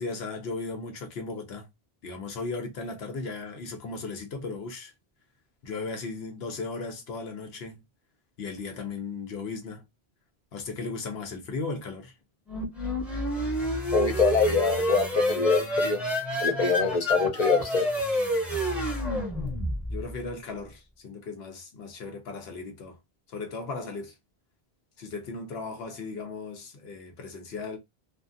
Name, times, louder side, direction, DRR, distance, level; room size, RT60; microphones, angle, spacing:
voice 1, 0.0-1.7 2.0-4.9 5.6-7.8 8.4-9.8 10.5-12.1 19.9-23.0 23.3-24.1 25.0-27.8, left 3 dB, 75° left, 0.9 m, -36 dB
sound 1, 12.5-20.1, equal, ahead, 0.7 m, -28 dB
voice 2, 13.9-16.0 16.4-17.9, left 4 dB, 45° left, 0.6 m, -24 dB
2.5 x 2.4 x 2.4 m
omnidirectional pair, 1.1 m